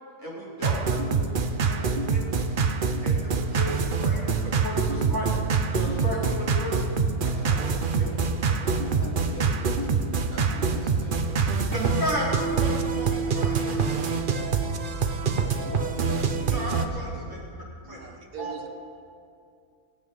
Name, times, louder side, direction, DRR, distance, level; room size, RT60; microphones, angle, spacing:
voice 1, 0.2-1.2 1.7-2.4 3.0-5.3 5.7-6.8 7.2-7.9 8.6-8.7 11.7-14.1 16.5-17.4 17.9-18.0 18.4-18.5, equal, 15° right, -8 dB, 4.0 m, -34 dB
sound 1, 0.6-16.9, right 5 dB, 45° right, 0.7 m, -25 dB
voice 2, 8.7-11.9 12.5-12.7 13.0-13.1 15.3-17.4, left 1 dB, 10° left, -5 dB, 2.8 m, -41 dB
voice 3, 17.8-18.7, right 6 dB, 80° right, 3 dB, 1.6 m, -40 dB
19.5 x 8.6 x 5.5 m, 2.3 s
omnidirectional pair, 1.6 m